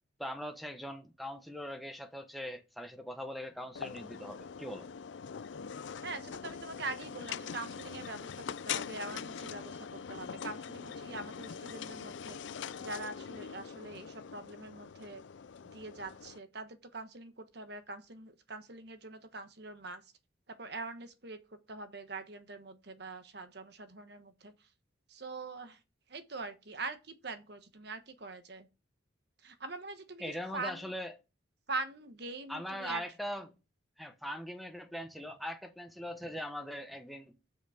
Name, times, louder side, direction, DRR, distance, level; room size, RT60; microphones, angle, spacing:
voice 1, 0.2-4.9 30.2-31.1 32.5-33.5 34.0-37.4, equal, ahead, 1.0 m, -41 dB
sound 1, 3.8-16.4, left 7 dB, 65° left, 0.4 m, -43 dB
voice 2, 6.0-15.2 15.6-20.1 20.5-24.7 25.1-25.8 26.1-28.7 29.4-30.2 30.5-30.9 31.7-33.0, right 3 dB, 55° right, 1.3 m, -43 dB
7.7 x 6.4 x 5.0 m
head